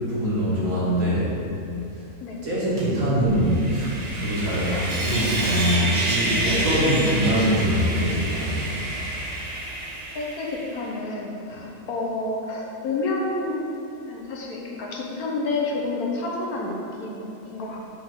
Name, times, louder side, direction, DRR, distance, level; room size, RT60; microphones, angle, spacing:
voice 1, 0.1-1.3 2.4-8.6, equal, 60° right, -8 dB, 2.1 m, -23 dB
Sawing, 3.4-10.8, right 2 dB, 40° right, 0.6 m, -28 dB
voice 2, 10.1-13.7 14.1-17.8, left 2 dB, 70° left, -2 dB, 1.3 m, -29 dB
5.3 x 4.3 x 6.0 m, 2.9 s
omnidirectional pair, 1.7 m